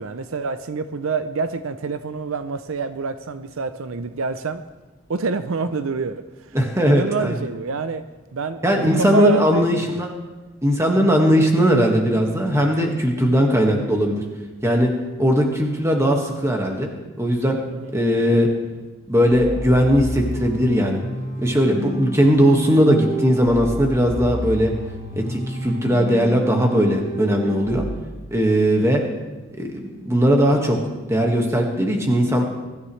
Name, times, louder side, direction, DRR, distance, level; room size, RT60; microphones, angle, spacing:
voice 1, 0.0-4.6 5.1-6.6 6.8-8.0 8.3-10.1 17.7-18.3, right 4 dB, 70° right, 11 dB, 0.6 m, -27 dB
voice 2, 6.5-7.4 8.6-10.1 10.6-14.2 14.6-14.9 15.2-16.9 17.2-17.6 17.9-18.5 19.1-21.0 21.4-24.7 25.2-27.9 28.3-29.0 29.5-30.8 31.1-32.4, equal, 15° right, 1 dB, 1.7 m, -18 dB
sound 1, 19.3-27.9, right 1 dB, 20° left, 2.8 m, -31 dB
22.5 x 13.0 x 3.3 m, 1.2 s
head